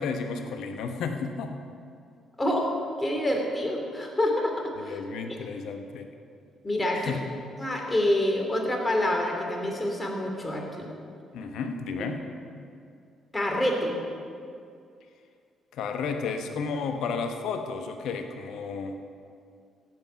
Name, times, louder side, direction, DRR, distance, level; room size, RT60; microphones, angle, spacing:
voice 1, 0.0-1.6 4.8-6.1 6.9-7.2 11.3-12.3 15.7-19.0, left 5 dB, 65° left, 6 dB, 1.0 m, -32 dB
voice 2, 3.0-5.0 6.6-7.1 7.6-10.9 13.3-14.0, left 1 dB, 20° left, 1 dB, 2.9 m, -27 dB
16.0 x 7.8 x 5.6 m, 2.4 s
figure-of-eight pair, 45°, 0 cm